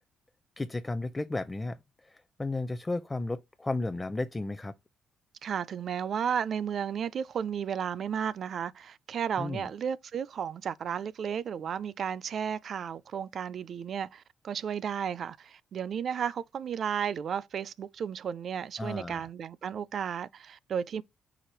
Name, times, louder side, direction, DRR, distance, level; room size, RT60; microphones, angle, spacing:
voice 1, 0.6-4.7 9.4-9.7 18.8-19.2, left 2 dB, 15° left, 0.5 m, -34 dB
voice 2, 5.4-21.0, right 8 dB, 60° right, 0.4 m, -33 dB
4.9 x 2.3 x 4.4 m
cardioid pair, 90°, 0 cm